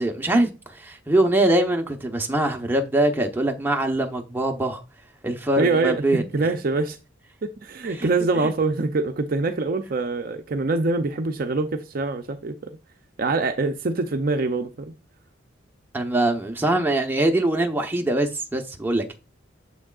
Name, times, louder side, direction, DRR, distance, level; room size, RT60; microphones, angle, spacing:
voice 1, 0.0-4.8 5.2-6.2 7.8-8.1 8.4-8.5 15.9-19.1, right 1 dB, 10° right, 0.8 m, -23 dB
voice 2, 5.6-7.0 7.4-12.7 13.2-14.9, right 3 dB, 45° right, 0.5 m, -24 dB
7.2 x 6.2 x 2.4 m
head